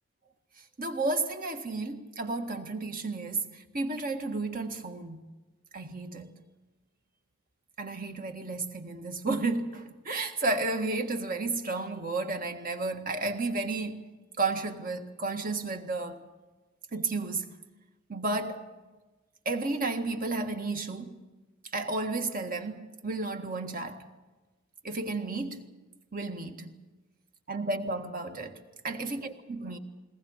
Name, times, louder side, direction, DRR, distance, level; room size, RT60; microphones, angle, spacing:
voice 1, 0.8-5.2 5.7-6.4 7.8-14.1 14.4-16.2 16.9-17.5 18.1-18.7 19.5-21.2 21.7-24.1 24.8-25.7 26.1-26.8 27.5-29.8, right 3 dB, 45° right, 1.7 m, -32 dB
22.0 x 19.0 x 7.4 m
head